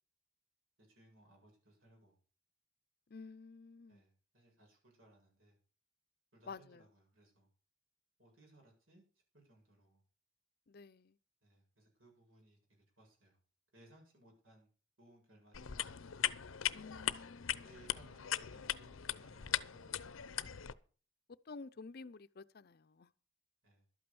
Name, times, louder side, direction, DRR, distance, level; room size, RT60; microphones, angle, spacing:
voice 1, 0.8-2.2 3.9-5.6 6.3-7.5 8.2-9.0 9.3-10.0 11.4-13.4 13.7-14.7 15.0-16.0 17.5-20.7 23.6-23.8, right 1 dB, 85° right, 7.8 m, -65 dB
voice 2, 3.1-4.0 6.5-6.8 10.7-11.2 16.7-17.7 21.5-23.1, left 4 dB, 50° left, 0.5 m, -51 dB
sound 1, 15.5-20.7, left 10 dB, 85° left, 0.7 m, -39 dB
12.5 x 8.8 x 6.9 m
head